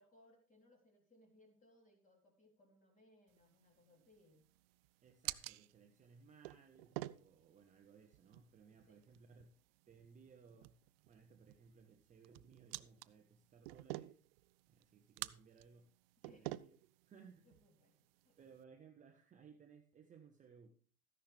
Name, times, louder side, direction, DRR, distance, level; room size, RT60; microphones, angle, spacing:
voice 1, 0.0-4.5 8.9-9.0 16.2-16.7 17.4-18.5, left 1 dB, 20° left, 2 dB, 3.7 m, -68 dB
sound 1, 3.3-18.6, right 18 dB, 45° right, 0.5 m, -51 dB
voice 2, 5.0-9.5 9.9-10.8 11.0-14.2 14.7-15.9 16.2-16.8 17.0-17.5 18.4-20.7, right 6 dB, 15° right, 4 dB, 1.0 m, -62 dB
13.5 x 10.5 x 3.4 m, 0.43 s
hypercardioid pair, 110°, 43 cm